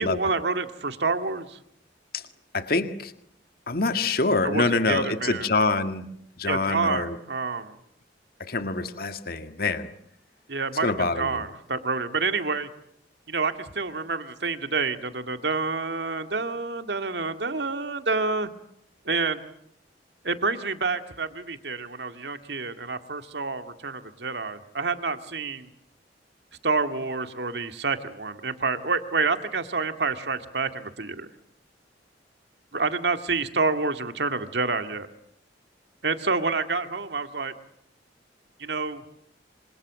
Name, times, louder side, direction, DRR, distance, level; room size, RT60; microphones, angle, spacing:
voice 1, 0.0-1.6 4.4-5.5 6.5-7.8 10.5-10.9 11.2-12.7 13.3-18.5 19.1-19.4 20.2-25.7 26.6-31.3 32.7-35.1 36.0-37.5 38.6-39.0, right 4 dB, 70° right, 8 dB, 2.1 m, -28 dB
voice 2, 2.5-3.1 3.7-6.1 6.4-7.2 8.4-9.9 10.8-11.4, left 3 dB, 55° left, 8 dB, 1.9 m, -25 dB
27.0 x 26.5 x 7.6 m, 0.71 s
head